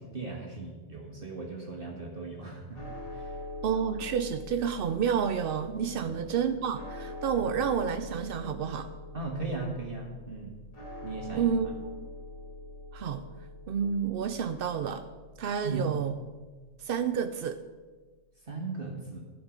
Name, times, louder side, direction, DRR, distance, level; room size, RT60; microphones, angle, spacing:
voice 1, 0.0-2.8 3.1-3.4 6.0-6.3 9.1-10.5 11.0-11.5 15.6-15.9 18.4-19.2, right 3 dB, 40° right, 0 dB, 1.5 m, -37 dB
sound 1, 2.7-17.0, left 1 dB, 65° left, 3.6 m, -44 dB
voice 2, 3.6-8.9 11.3-11.7 12.9-13.3 13.7-15.0 15.4-16.1 16.8-17.6, right 7 dB, 70° right, 9 dB, 0.5 m, -30 dB
12.0 x 9.0 x 5.0 m, 1.4 s
omnidirectional pair, 1.5 m